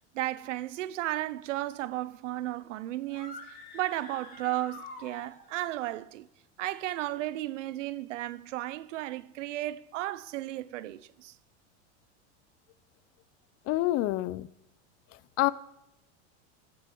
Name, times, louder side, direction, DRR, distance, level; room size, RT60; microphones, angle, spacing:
voice 1, 0.1-6.3 6.6-11.3, right 15 dB, 90° right, 0.8 m, -34 dB
sound 1, 3.1-5.7, left 2 dB, 20° left, 5.2 m, -47 dB
voice 2, 13.7-14.5 15.4-15.5, left 17 dB, 40° left, 0.6 m, -26 dB
15.5 x 6.9 x 7.8 m
supercardioid pair, 125°, 36 cm